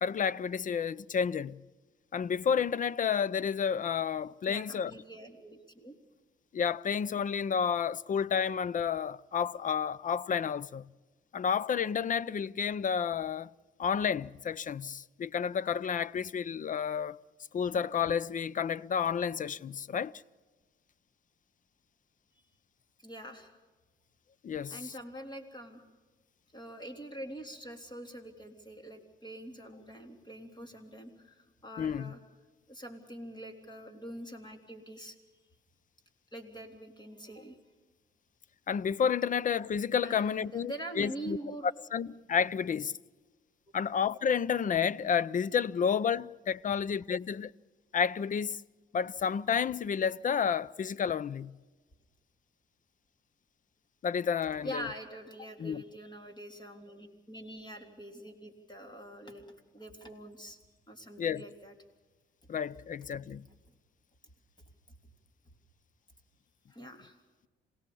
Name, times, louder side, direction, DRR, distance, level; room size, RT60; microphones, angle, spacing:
voice 1, 0.0-1.6 2.1-4.9 6.5-10.9 11.3-13.5 13.8-17.2 17.5-20.2 24.4-24.9 31.8-32.1 38.7-41.4 41.9-42.9 43.7-47.5 47.9-48.6 48.9-51.5 54.0-54.9 55.6-55.8 61.2-61.5 62.5-63.4, left 7 dB, 40° left, 0.6 m, -30 dB
voice 2, 4.5-6.0 23.0-23.6 24.7-25.8 26.5-32.2 32.7-35.2 36.3-37.6 40.0-41.7 54.6-60.6 60.9-61.7 66.7-67.2, right 1 dB, 20° left, 3.6 m, -44 dB
27.0 x 17.5 x 7.1 m
cardioid pair, 90°, 20 cm